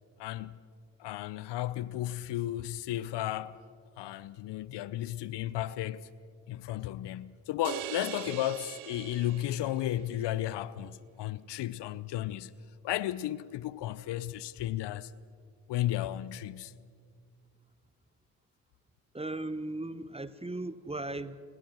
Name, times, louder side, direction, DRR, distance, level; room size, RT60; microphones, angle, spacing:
voice 1, 0.2-0.6 1.0-3.6 4.0-6.1 6.5-12.5 12.8-15.1 15.7-16.7, left 13 dB, 60° left, 0.8 m, -34 dB
sound 1, 7.6-10.0, right 13 dB, 75° right, 1.0 m, -41 dB
voice 2, 19.1-21.4, right 2 dB, 15° right, 1.0 m, -37 dB
22.0 x 20.5 x 6.5 m
hypercardioid pair, 45°, 46 cm